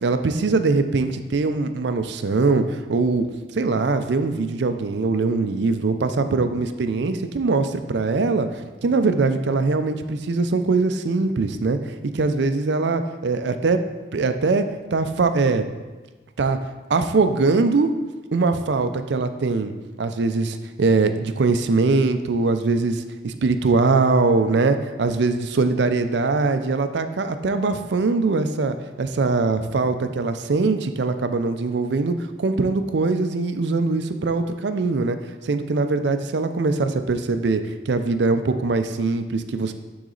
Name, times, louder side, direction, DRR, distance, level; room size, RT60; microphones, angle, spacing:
voice 1, 0.0-3.3 3.5-11.8 12.1-13.8 14.1-14.6 14.9-15.6 16.4-16.6 16.9-17.9 18.3-19.7 20.0-35.2 35.4-39.7, right 3 dB, 65° right, 9 dB, 0.4 m, -22 dB
9.3 x 3.9 x 3.9 m, 1.2 s
head